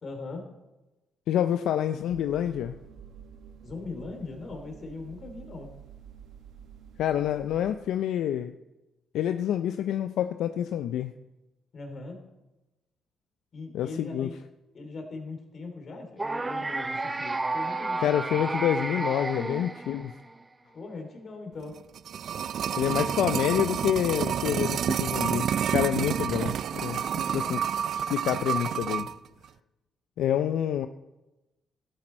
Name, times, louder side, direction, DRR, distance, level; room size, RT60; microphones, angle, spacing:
voice 1, 0.0-0.5 3.6-5.7 11.7-12.2 13.5-14.3 14.7-18.5 20.7-21.8 27.1-27.5, left 3 dB, 50° left, 4 dB, 2.9 m, -40 dB
voice 2, 1.3-2.7 7.0-8.5 9.1-11.1 13.7-14.3 18.0-20.1 22.8-27.0 27.3-27.7 27.9-29.1 30.2-30.9, left 10 dB, 80° left, 10 dB, 0.4 m, -27 dB
sound 1, 2.1-7.8, right 7 dB, 80° right, 1.2 m, -49 dB
sound 2, 16.2-20.4, right 2 dB, 20° right, 0.7 m, -31 dB
sound 3, 21.7-29.1 29.4-29.5, right 8 dB, 65° right, 0.3 m, -29 dB
12.5 x 10.5 x 4.4 m, 1.0 s
cardioid pair, 90°, 0 cm